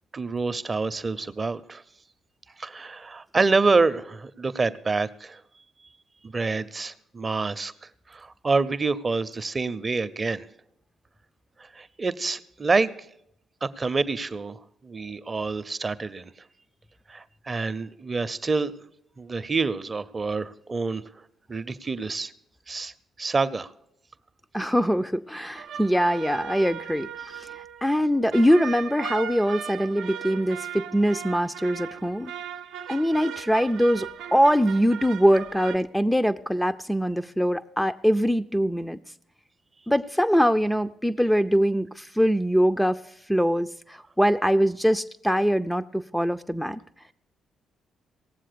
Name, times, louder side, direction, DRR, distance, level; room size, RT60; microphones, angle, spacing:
voice 1, 0.1-1.8 2.6-5.4 6.2-10.4 11.6-12.9 13.6-16.3 17.1-18.7 19.2-21.2 21.5-22.3 22.7-22.9 23.2-23.7, right 3 dB, 35° right, 13 dB, 0.7 m, -27 dB
voice 2, 24.5-27.5 27.8-32.3 32.9-39.0 39.9-43.0 43.3-46.8, equal, 5° left, 10 dB, 0.5 m, -23 dB
sound 1, 25.6-35.8, right 8 dB, 75° right, 0.5 m, -38 dB
18.0 x 7.5 x 6.8 m, 0.76 s
supercardioid pair, 55°, 0 cm